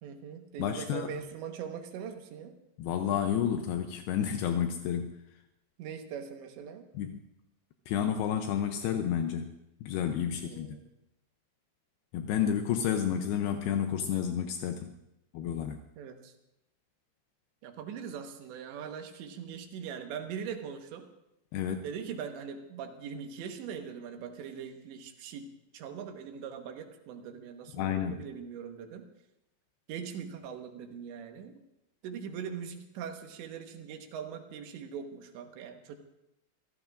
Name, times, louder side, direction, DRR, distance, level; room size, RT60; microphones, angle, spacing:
voice 1, 0.0-2.6 5.8-6.9 10.4-10.9 12.3-12.4 16.0-16.3 17.6-21.1 21.8-29.1 29.9-31.6 32.0-36.0, right 7 dB, 75° right, 5 dB, 3.4 m, -41 dB
voice 2, 0.6-1.1 2.8-5.2 7.0-7.2 7.9-9.5 9.8-10.8 12.1-14.9 15.3-15.8 21.5-21.9 27.8-28.2, left 9 dB, 85° left, 6 dB, 2.3 m, -30 dB
27.5 x 16.0 x 2.5 m, 0.87 s
omnidirectional pair, 5.4 m